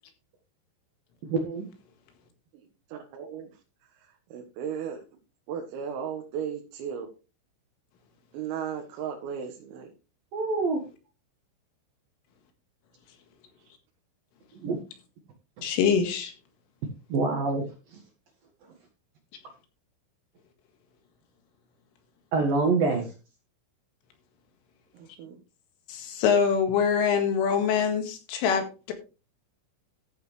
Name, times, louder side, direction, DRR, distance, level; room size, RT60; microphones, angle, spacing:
voice 1, 1.3-1.7 10.3-10.8 14.6-14.8 17.1-17.7 22.3-23.1, right 3 dB, 60° right, 2.5 m, -25 dB
voice 2, 2.9-3.5 4.3-5.0 5.5-7.1 8.3-9.9 24.9-25.4, right 8 dB, 80° right, 4.1 m, -35 dB
voice 3, 15.6-16.3 25.9-28.9, left 6 dB, 75° left, 4.2 m, -24 dB
14.5 x 7.5 x 3.2 m
omnidirectional pair, 6.0 m